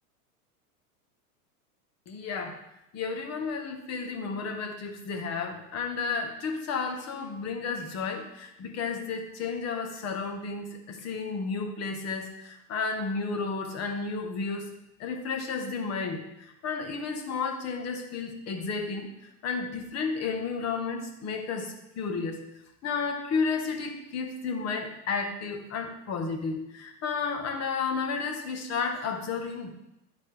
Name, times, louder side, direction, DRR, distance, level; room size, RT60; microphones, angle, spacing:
voice 1, 2.1-2.6 2.9-14.7 15.0-22.4 22.8-29.7, left 4 dB, 35° left, 3 dB, 1.3 m, -32 dB
11.5 x 4.0 x 3.4 m, 0.86 s
hypercardioid pair, 115°, 46 cm